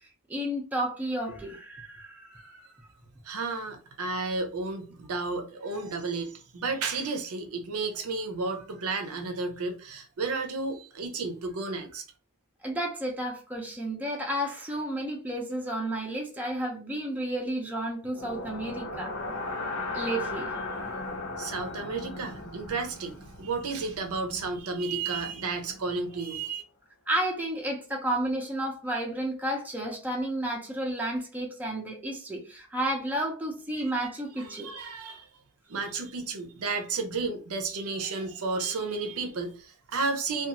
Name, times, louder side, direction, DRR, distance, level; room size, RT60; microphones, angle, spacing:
voice 1, 0.3-2.7 12.6-19.1 19.9-20.5 27.1-34.7, right 1 dB, 10° right, 0.5 m, -32 dB
voice 2, 3.2-12.0 21.4-26.6 33.7-33.9 34.4-35.3 35.7-40.5, right 4 dB, 75° right, 0.6 m, -32 dB
sound 1, 18.1-26.2, left 2 dB, 75° left, 1.1 m, -37 dB
2.5 x 2.3 x 2.8 m
head